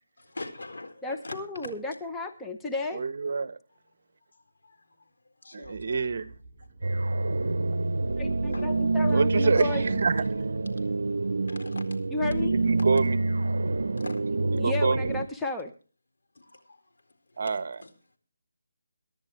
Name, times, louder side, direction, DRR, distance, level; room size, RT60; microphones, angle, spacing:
voice 1, 0.3-1.7 4.6-4.8 5.4-6.0 8.5-8.9 9.4-9.7 10.4-10.5 11.5-11.9 12.4-12.5 12.8-12.9 14.0-14.2 16.4-16.6 17.4-17.9, left 2 dB, 75° left, 4.1 m, -42 dB
voice 2, 1.0-3.0 8.2-10.0 12.1-12.5 14.6-15.7, left 3 dB, 5° left, 0.8 m, -32 dB
voice 3, 2.9-3.6 5.5-6.3 9.1-10.4 12.5-13.2 14.6-15.1 17.4-17.7, right 4 dB, 45° right, 1.1 m, -27 dB
sound 1, 5.6-12.4, right 2 dB, 15° right, 2.3 m, -51 dB
sound 2, 6.8-15.3, right 3 dB, 75° right, 0.7 m, -27 dB
24.0 x 11.0 x 3.1 m
figure-of-eight pair, 170°, 0 cm